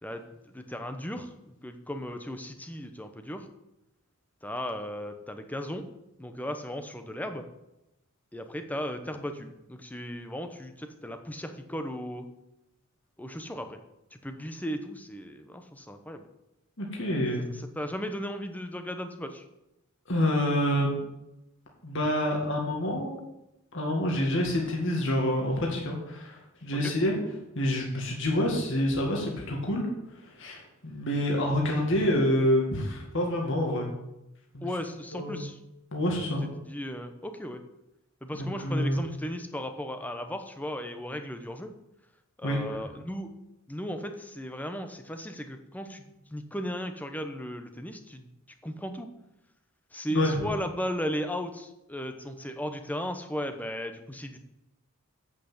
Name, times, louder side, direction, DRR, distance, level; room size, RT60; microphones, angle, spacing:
voice 1, 0.0-3.5 4.4-5.8 6.2-7.5 8.3-12.3 13.2-13.8 14.1-16.2 17.5-19.4 26.8-26.9 34.6-35.6 36.6-37.6 38.2-41.7 42.4-43.3 43.7-48.3 48.6-49.1 49.9-54.4, equal, 5° left, 7 dB, 0.8 m, -36 dB
voice 2, 16.8-17.5 20.1-21.0 21.8-23.2 23.7-27.1 27.5-29.9 30.4-33.9 34.5-34.7 35.1-35.4 35.9-36.4 38.3-39.0 42.4-42.6 50.1-50.3, left 1 dB, 60° left, 0 dB, 2.0 m, -27 dB
8.3 x 6.5 x 7.9 m, 0.91 s
head